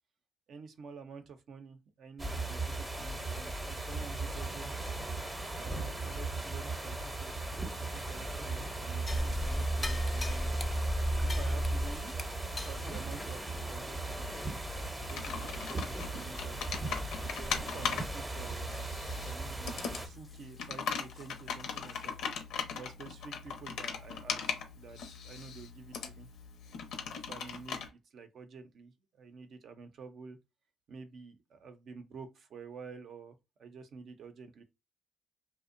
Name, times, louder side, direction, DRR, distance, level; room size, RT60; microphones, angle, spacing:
voice 1, 0.5-4.9 5.5-10.6 11.2-12.2 12.5-14.6 14.9-16.6 17.3-18.7 19.1-22.2 22.7-25.0 25.2-26.3 27.1-30.4 30.9-34.6, right 5 dB, 65° right, 0.5 m, -49 dB
sound 1, 2.2-20.1, right 2 dB, 15° right, 0.7 m, -38 dB
sound 2, 9.1-15.7 16.0-16.1 16.6-16.9 17.3-17.7 18.0-18.1 18.7-18.8 21.2-21.3 21.9-22.0, equal, 20° left, 0.3 m, -35 dB
Computer keyboard, 14.9-27.9, left 6 dB, 80° left, 0.6 m, -39 dB
2.6 x 2.0 x 2.5 m
cardioid pair, 90°, 0 cm